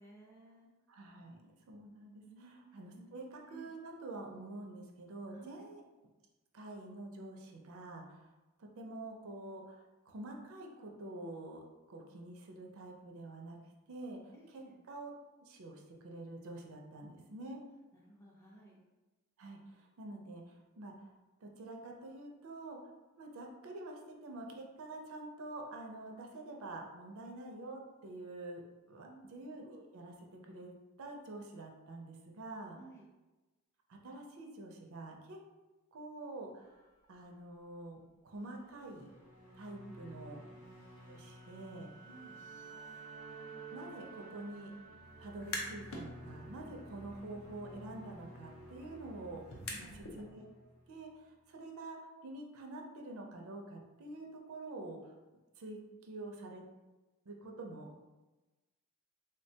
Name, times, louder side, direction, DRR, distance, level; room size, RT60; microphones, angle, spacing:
voice 1, 0.0-0.7 2.2-2.7 2.9-3.1 3.5-3.7 5.3-5.7 14.3-14.8 17.9-18.8 28.9-29.3 32.7-33.1 39.8-40.5 42.0-42.4 49.6-50.0, right 2 dB, 10° left, -3 dB, 0.4 m, -57 dB
voice 2, 0.9-5.8 6.5-8.3 8.6-11.6 11.9-13.6 13.9-15.1 15.4-17.6 19.4-20.9 21.4-22.8 23.2-28.6 28.9-32.8 33.9-35.4 35.9-36.8 37.1-39.1 39.6-40.4 41.1-41.9 42.7-42.8 43.7-44.7 45.2-49.4 49.8-50.5 50.9-55.1 55.6-56.6 57.3-57.9, right 2 dB, 70° right, 1 dB, 0.4 m, -47 dB
sound 1, 36.6-37.4 38.4-39.7 40.2-40.3 40.6-47.2, right 6 dB, 35° left, 0.8 m, -57 dB
sound 2, 38.8-51.3, right 1 dB, 85° left, 0.9 m, -53 dB
sound 3, 45.2-46.1 46.5-50.2, left 2 dB, 65° left, 0.5 m, -46 dB
3.3 x 2.1 x 2.7 m, 1.1 s
head